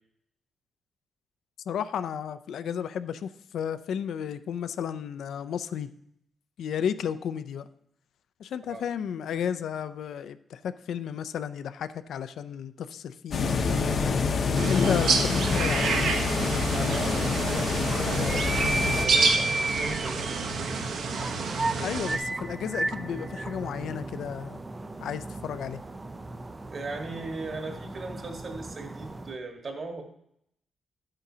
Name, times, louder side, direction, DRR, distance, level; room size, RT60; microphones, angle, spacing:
voice 1, 1.7-5.9 6.6-7.7 8.4-13.6 14.7-16.0 21.8-24.6 25.0-25.8, left 8 dB, 70° left, 12 dB, 0.4 m, -33 dB
sound 1, 13.3-19.1, left 5 dB, 45° left, 0.7 m, -26 dB
sound 2, 14.6-22.2, right 4 dB, 70° right, 1.1 m, -29 dB
sound 3, 15.4-29.4, right 2 dB, 15° right, 0.4 m, -35 dB
voice 2, 16.7-20.7 26.7-30.0, right 3 dB, 35° right, 3 dB, 1.4 m, -38 dB
11.5 x 8.8 x 2.8 m, 0.74 s
wide cardioid pair, 180°, 0 cm